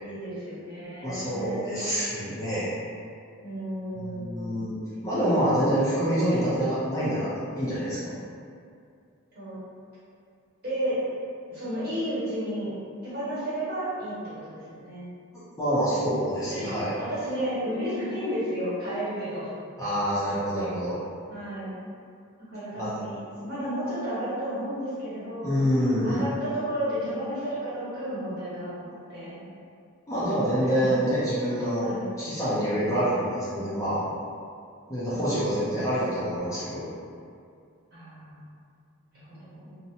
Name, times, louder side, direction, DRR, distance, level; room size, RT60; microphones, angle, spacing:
voice 1, 0.0-1.9 3.4-4.7 9.3-9.6 10.6-11.0 11.5-12.7 13.0-15.1 16.0-16.1 16.5-19.5 19.9-20.0 21.3-21.8 22.5-23.1 23.4-25.6 26.0-29.4 30.6-31.0 31.8-32.2 32.7-33.2 35.1-36.0 37.9-38.5 39.1-39.8, right 1 dB, 45° right, -11 dB, 1.1 m, -33 dB
voice 2, 1.0-2.7 4.2-8.2 15.3-16.9 19.8-21.0 22.8-22.9 25.4-26.2 30.1-34.0 34.9-36.8, equal, 15° left, -11 dB, 0.4 m, -26 dB
2.6 x 2.0 x 2.7 m, 2.3 s
head